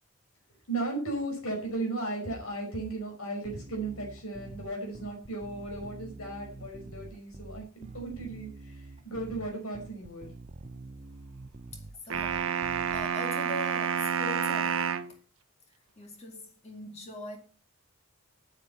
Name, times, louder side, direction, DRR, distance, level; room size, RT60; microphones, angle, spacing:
voice 1, 0.7-10.3, right 2 dB, 75° left, 5.1 m, -36 dB
Bass guitar, 3.4-13.0, right 2 dB, 30° right, 0.6 m, -46 dB
voice 2, 11.7-15.2 16.0-17.4, left 2 dB, 30° left, 2.3 m, -42 dB
sound 1, 12.1-15.1, right 7 dB, 70° right, 0.8 m, -29 dB
9.1 x 8.2 x 6.9 m
head